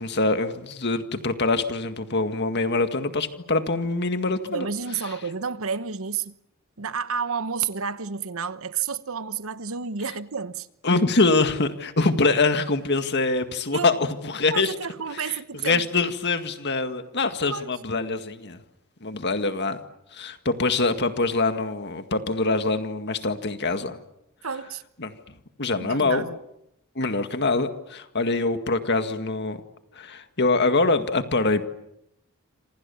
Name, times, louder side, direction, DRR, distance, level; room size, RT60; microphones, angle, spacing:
voice 1, 0.0-4.7 10.8-14.7 15.2-15.3 15.6-18.6 19.0-19.8 20.1-24.0 25.0-25.1 25.6-26.2 27.0-29.6 30.0-31.7, left 3 dB, 50° left, 2.0 m, -24 dB
voice 2, 4.4-6.4 6.8-10.7 13.7-14.0 14.5-15.9 17.4-17.7 24.4-24.8 25.8-26.4, right 6 dB, 65° right, 1.1 m, -30 dB
27.0 x 27.0 x 7.1 m
head